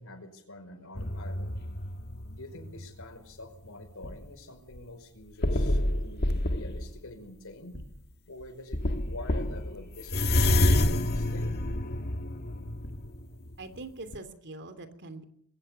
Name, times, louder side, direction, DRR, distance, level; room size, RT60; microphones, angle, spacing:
voice 1, 0.0-1.5 2.4-7.8 8.3-11.6, left 2 dB, 65° left, 8 dB, 5.1 m, -46 dB
sound 1, 0.9-3.1 3.6-4.3 4.8-4.9 5.4-7.0 7.7-8.0 8.4-8.5 8.7-13.8 14.1-14.2, left 1 dB, 45° left, 1.7 m, -28 dB
voice 2, 13.6-15.2, right 2 dB, 55° right, 10 dB, 3.0 m, -43 dB
22.0 x 18.0 x 6.8 m, 0.67 s
head